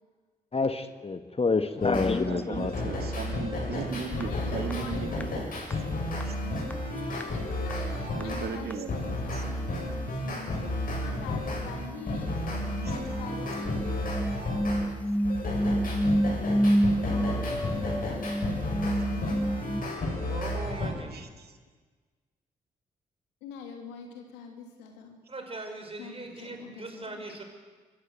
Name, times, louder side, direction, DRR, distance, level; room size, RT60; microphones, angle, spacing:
voice 1, 0.5-2.7, left 4 dB, 35° left, 1.6 m, -27 dB
sound 1, 1.8-2.1 2.5-8.5 8.9-14.8 15.2-20.9, left 1 dB, 50° left, 7.9 m, -32 dB
voice 2, 2.2-5.4 5.7-5.8 6.2-6.3 8.2-9.0 9.3-9.4 12.8-12.9 21.1-21.6, right 6 dB, 65° right, 2.2 m, -37 dB
voice 3, 4.0-5.8 6.4-12.3 12.9-14.3 17.0-18.6 19.9-20.1 23.4-25.2 26.0-27.4, left 6 dB, 85° left, 2.8 m, -45 dB
sound 2, 4.2-4.3 4.7-4.8 5.2-5.3 5.7-5.8 6.2-6.3 6.7-6.8 7.1-7.4 7.7-7.8 8.2-8.3 8.7-8.8 9.0-9.1 11.1-11.2 11.5-19.8, equal, 10° left, 1.0 m, -29 dB
voice 4, 20.3-21.2 25.3-27.4, right 2 dB, 30° right, 5.4 m, -40 dB
25.0 x 14.5 x 8.0 m
hypercardioid pair, 45°, 18 cm